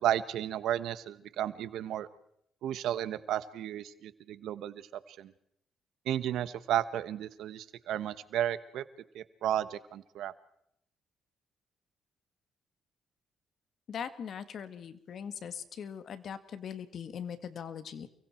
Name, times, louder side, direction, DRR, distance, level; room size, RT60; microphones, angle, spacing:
voice 1, 0.0-2.1 2.6-4.8 5.1-5.3 6.1-8.8 9.1-10.3, right 11 dB, 80° right, 14 dB, 1.2 m, -33 dB
voice 2, 13.9-18.1, left 7 dB, 60° left, 11 dB, 1.8 m, -41 dB
29.5 x 23.5 x 4.5 m, 0.74 s
cardioid pair, 90°, 0 cm